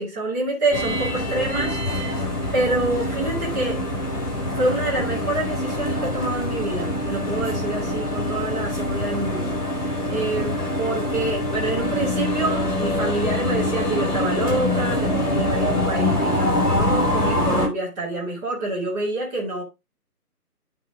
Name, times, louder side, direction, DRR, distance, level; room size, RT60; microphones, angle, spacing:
voice 1, 0.0-3.8 4.5-9.8 10.1-19.6, right 2 dB, 10° right, 2.5 m, -27 dB
sound 1, 0.7-17.7, left 1 dB, 25° left, 6.1 m, -24 dB
10.5 x 6.1 x 3.6 m
figure-of-eight pair, 155°, 46 cm